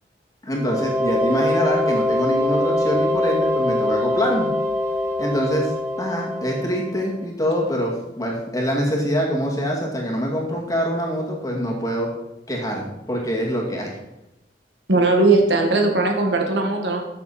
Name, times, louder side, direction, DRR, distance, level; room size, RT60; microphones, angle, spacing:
voice 1, 0.4-4.5 5.2-5.7 6.0-12.1 12.5-13.9, equal, 20° left, -1 dB, 2.2 m, -24 dB
sound 1, 0.5-7.2, left 1 dB, 15° right, 1.5 m, -23 dB
voice 2, 14.9-17.0, right 2 dB, 80° right, 2 dB, 1.8 m, -18 dB
13.0 x 6.7 x 4.3 m, 0.91 s
head